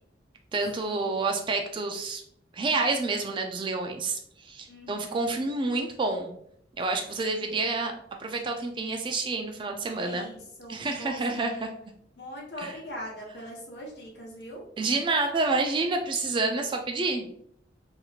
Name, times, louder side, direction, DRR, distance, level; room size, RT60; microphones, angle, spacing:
voice 1, 0.5-2.2 2.5-6.3 6.8-10.3 10.7-11.7 12.6-12.7 14.8-17.3, right 3 dB, 25° right, 3 dB, 0.3 m, -28 dB
voice 2, 4.7-5.4 7.3-7.6 10.0-11.6 12.2-14.6, equal, 65° left, -2 dB, 0.9 m, -42 dB
2.9 x 2.8 x 2.3 m, 0.67 s
head